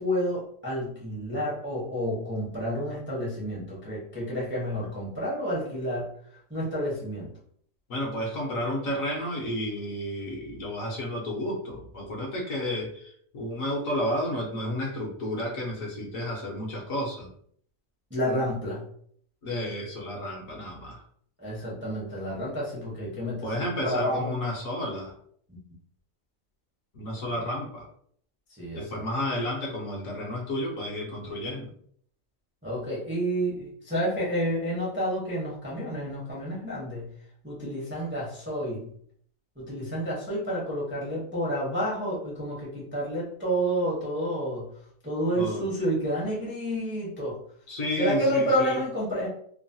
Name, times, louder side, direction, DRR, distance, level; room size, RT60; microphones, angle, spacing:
voice 1, 0.0-6.1 6.5-7.3 18.1-18.8 21.4-24.3 25.5-25.6 27.3-27.4 28.5-29.0 32.6-37.1 37.4-38.9 39.6-44.7 45.0-47.4 48.0-49.3, equal, 15° right, -6 dB, 0.4 m, -30 dB
voice 2, 7.9-17.3 19.4-21.0 23.4-25.1 26.9-27.9 28.7-31.7 45.4-45.7 47.7-48.8, left 1 dB, 60° left, -2 dB, 1.0 m, -31 dB
3.0 x 2.1 x 2.6 m, 0.63 s
omnidirectional pair, 1.7 m